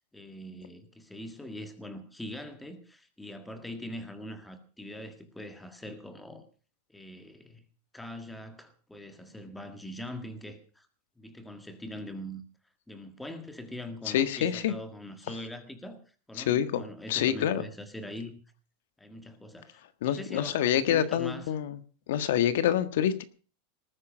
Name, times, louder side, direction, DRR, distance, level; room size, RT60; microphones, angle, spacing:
voice 1, 0.1-6.4 6.9-7.7 7.9-10.9 11.2-12.4 12.9-16.0 16.3-18.4 19.0-21.5, left 1 dB, 5° left, 1.7 m, -42 dB
voice 2, 14.0-14.7 16.4-16.8 17.1-17.6 20.0-21.8 22.1-23.2, left 10 dB, 70° left, 1.6 m, -26 dB
19.5 x 9.7 x 6.2 m
supercardioid pair, 170°, 0 cm